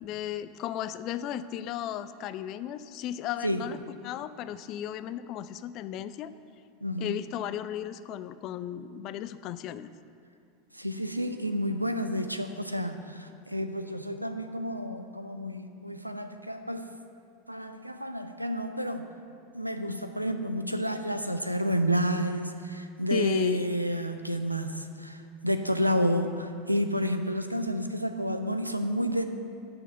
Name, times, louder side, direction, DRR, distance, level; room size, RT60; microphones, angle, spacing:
voice 1, 0.0-3.8 4.0-6.3 7.0-9.9 23.1-23.7, left 11 dB, 40° left, 14 dB, 0.3 m, -35 dB
voice 2, 6.8-7.2 10.7-16.9 17.5-19.1 19.5-29.2, equal, 90° right, 8 dB, 0.5 m, -30 dB
7.7 x 6.2 x 7.7 m, 2.5 s
figure-of-eight pair, 85°, 0 cm